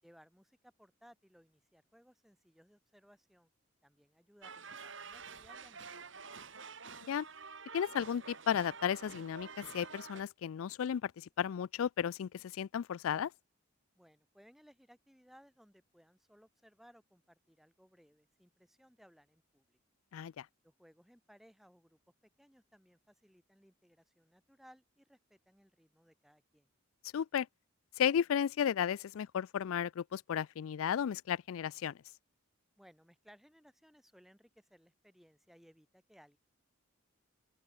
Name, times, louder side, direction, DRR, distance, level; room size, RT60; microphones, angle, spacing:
voice 1, 0.0-3.5 3.8-6.5 14.0-19.8 20.6-22.0 22.4-26.7 32.8-36.4, equal, ahead, 6.9 m, -63 dB
sound 1, 4.4-10.2, right 5 dB, 65° right, 3.3 m, -49 dB
voice 2, 7.7-13.3 20.1-20.5 27.1-27.5 28.0-31.9, left 8 dB, 80° left, 0.4 m, -34 dB
open air
head